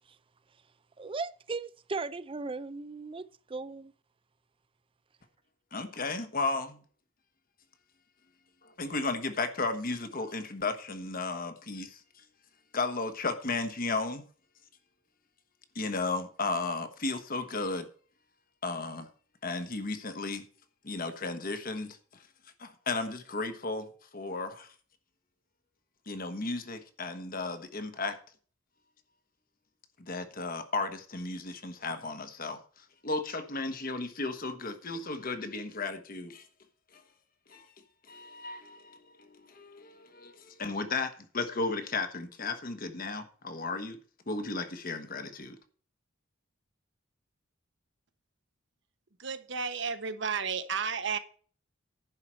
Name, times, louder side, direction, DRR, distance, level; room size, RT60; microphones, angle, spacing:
voice 1, 1.0-3.9, right 3 dB, 25° right, 0.5 m, -37 dB
voice 2, 5.7-6.8 8.6-12.0 12.7-14.2 15.7-17.9 18.6-19.1 19.4-20.5 20.8-22.2 22.6-23.9 24.1-24.7 26.1-28.2 30.0-36.5 37.5-37.6 38.1-44.0 44.3-45.6, left 3 dB, 45° left, 1.3 m, -34 dB
voice 3, 49.2-51.2, right 6 dB, 65° right, 1.1 m, -32 dB
10.5 x 4.8 x 7.5 m
head